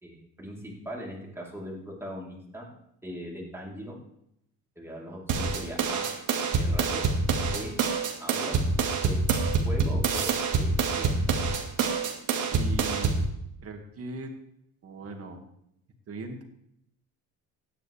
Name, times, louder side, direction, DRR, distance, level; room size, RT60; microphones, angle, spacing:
voice 1, 0.0-2.7 3.0-4.0 4.8-6.0 6.4-7.1 7.5-7.7 8.2-8.6 9.0-9.2 9.6-10.7 11.0-11.2, equal, 5° right, -4 dB, 3.7 m, -39 dB
sound 1, 5.3-13.3, right 4 dB, 65° right, 2.1 m, -26 dB
voice 2, 12.5-13.2 13.6-14.3 14.8-15.4 16.1-16.4, right 3 dB, 45° right, 4 dB, 2.2 m, -39 dB
16.5 x 9.9 x 3.4 m, 0.74 s
cardioid pair, 120°, 34 cm